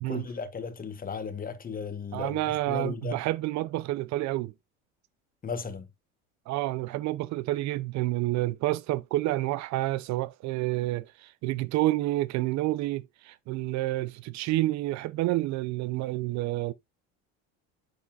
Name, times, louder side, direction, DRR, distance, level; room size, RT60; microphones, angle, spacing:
voice 1, 0.1-3.2 5.4-5.9, left 5 dB, 25° left, 1.6 m, -36 dB
voice 2, 2.1-4.5 6.5-16.7, right 17 dB, 55° right, 0.6 m, -29 dB
7.2 x 7.0 x 2.4 m
supercardioid pair, 95°, 34 cm